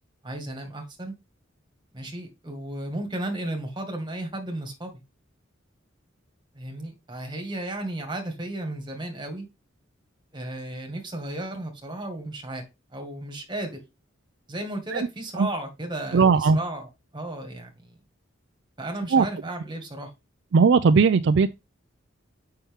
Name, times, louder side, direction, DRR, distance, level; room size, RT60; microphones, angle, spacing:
voice 1, 0.2-1.1 1.9-4.9 6.5-9.5 10.3-12.6 12.9-13.8 14.5-17.9 18.8-20.1, right 1 dB, 25° right, 1.9 m, -34 dB
voice 2, 16.1-16.6 19.1-19.3 20.5-21.5, right 5 dB, 60° right, 0.4 m, -18 dB
7.1 x 5.7 x 3.6 m
head